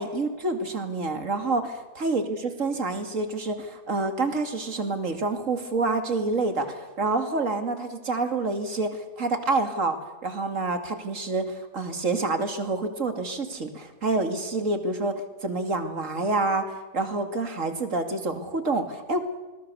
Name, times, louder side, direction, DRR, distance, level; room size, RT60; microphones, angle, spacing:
voice 1, 0.0-16.6 16.9-19.2, right 3 dB, 50° right, 6 dB, 2.8 m, -28 dB
26.5 x 21.0 x 7.0 m, 1.2 s
omnidirectional pair, 1.7 m